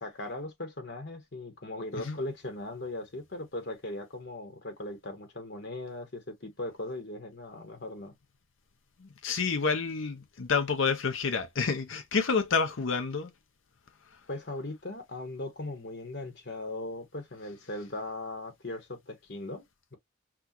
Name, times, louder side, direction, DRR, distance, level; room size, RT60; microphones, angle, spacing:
voice 1, 0.0-8.1 14.3-19.6, left 2 dB, 55° left, 1.2 m, -39 dB
voice 2, 9.0-13.3 14.1-14.2, left 5 dB, 75° left, 0.7 m, -29 dB
6.0 x 2.4 x 2.9 m
head